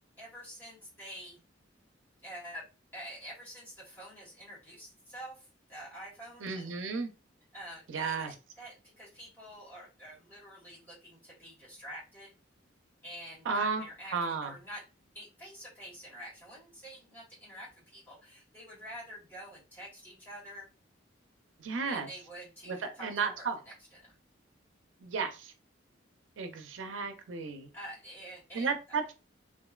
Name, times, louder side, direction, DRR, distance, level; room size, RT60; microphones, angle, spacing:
voice 1, 0.2-1.4 2.2-2.6 2.9-6.8 7.5-12.3 13.0-14.8 15.1-20.7 21.8-23.7 24.0-24.1 27.7-28.7, equal, 10° left, 1.5 m, -47 dB
voice 2, 6.4-7.1 7.9-8.3 13.5-13.8 14.1-14.5 21.6-22.1 22.7-23.6 25.0-25.5 26.4-27.7 28.5-29.0, right 5 dB, 80° right, 0.5 m, -33 dB
2.9 x 2.5 x 2.3 m
head